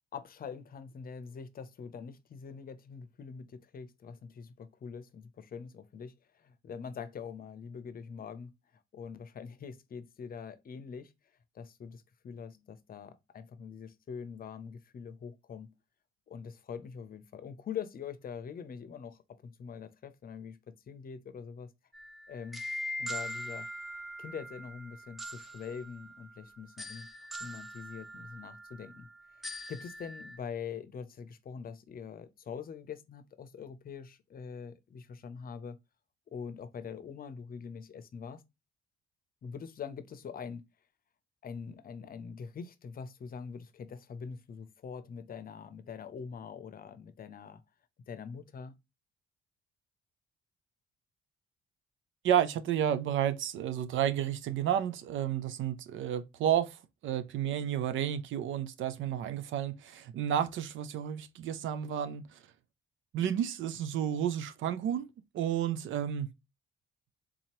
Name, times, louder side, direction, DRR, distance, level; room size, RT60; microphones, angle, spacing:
voice 1, 0.1-6.1 6.4-8.5 8.9-11.1 11.5-15.7 16.3-20.6 20.9-21.7 22.3-22.6 23.0-23.7 24.2-27.1 27.4-29.1 29.7-35.8 36.3-38.4 39.4-40.6 41.4-47.6 48.1-48.7, left 6 dB, 45° left, 0.7 m, -44 dB
sound 1, 21.9-30.4, equal, ahead, 0.7 m, -42 dB
voice 2, 52.2-62.2 63.1-65.1 65.3-66.3, right 10 dB, 75° right, 0.6 m, -31 dB
3.9 x 2.8 x 3.0 m
cardioid pair, 90°, 20 cm